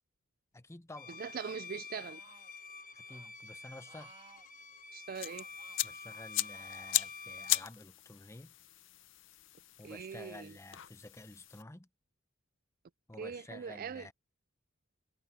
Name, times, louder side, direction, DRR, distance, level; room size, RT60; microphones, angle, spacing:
voice 1, 0.5-1.2 2.9-4.1 5.8-8.5 9.8-11.9 13.1-14.1, left 2 dB, 15° left, 0.7 m, -51 dB
Bowed string instrument, 1.0-7.7, left 4 dB, 40° left, 1.3 m, -48 dB
voice 2, 1.1-2.2 4.9-5.5 9.8-10.6 13.2-14.1, right 6 dB, 45° right, 0.3 m, -42 dB
sound 1, 2.1-2.5 3.1-3.3 3.9-4.5 5.2-5.8 6.4-7.1 7.8-7.9, right 4 dB, 30° right, 2.7 m, -59 dB
sound 2, 5.1-11.6, left 15 dB, 65° left, 0.6 m, -38 dB
head